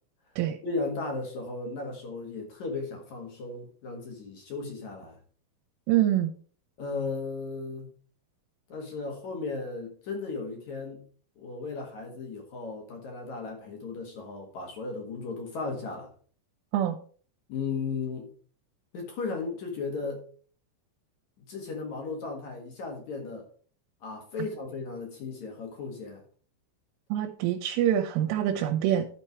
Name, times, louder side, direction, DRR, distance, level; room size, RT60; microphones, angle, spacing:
voice 1, 0.6-5.2 6.8-7.9 8.7-11.0 11.4-16.1 17.5-18.3 18.9-20.2 21.4-23.5 24.0-26.2, left 4 dB, 60° left, 2 dB, 2.1 m, -35 dB
voice 2, 5.9-6.3 16.7-17.0 27.1-29.1, right 11 dB, 80° right, 3 dB, 3.4 m, -25 dB
11.5 x 4.5 x 4.6 m, 0.43 s
omnidirectional pair, 5.7 m